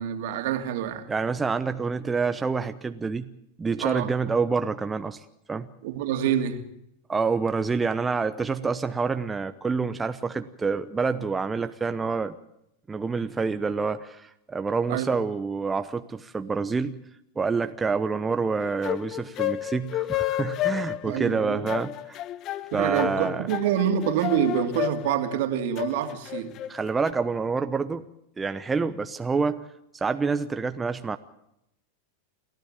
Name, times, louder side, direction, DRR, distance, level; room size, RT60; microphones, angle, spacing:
voice 1, 0.0-1.1 3.8-4.1 5.8-6.6 14.9-15.1 21.0-21.7 22.7-26.5, right 10 dB, 65° right, 2.6 m, -27 dB
voice 2, 1.1-3.3 3.6-5.7 7.1-12.4 12.9-17.0 17.4-22.2 22.7-23.4 26.7-28.1 28.4-29.7 29.9-31.2, right 4 dB, 15° right, 0.9 m, -27 dB
sound 1, 18.6-27.1, left 14 dB, 40° left, 0.8 m, -31 dB
29.5 x 12.0 x 9.0 m
hypercardioid pair, 105°, 0 cm